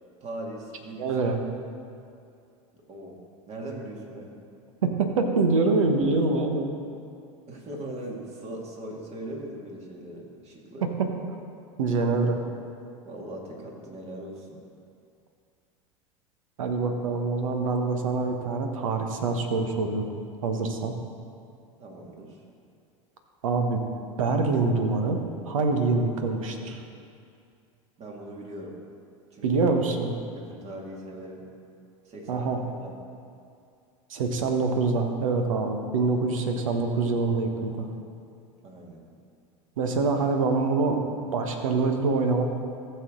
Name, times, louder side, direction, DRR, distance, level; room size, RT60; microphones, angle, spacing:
voice 1, 0.2-1.1 2.9-3.2 3.5-4.3 7.5-11.0 13.0-14.6 21.8-22.4 28.0-28.7 29.3-29.6 30.3-31.5 32.0-32.5 32.8-32.9 38.6-39.0, right 1 dB, 40° right, -1 dB, 2.2 m, -40 dB
voice 2, 1.0-1.4 4.8-6.7 11.8-12.4 16.6-20.0 20.4-20.9 23.4-23.8 24.2-26.8 29.4-30.1 32.3-32.6 34.1-37.9 39.8-41.0 41.3-42.4, right 3 dB, 80° right, 4 dB, 1.2 m, -25 dB
15.0 x 6.6 x 3.9 m, 2.5 s
hypercardioid pair, 85°, 17 cm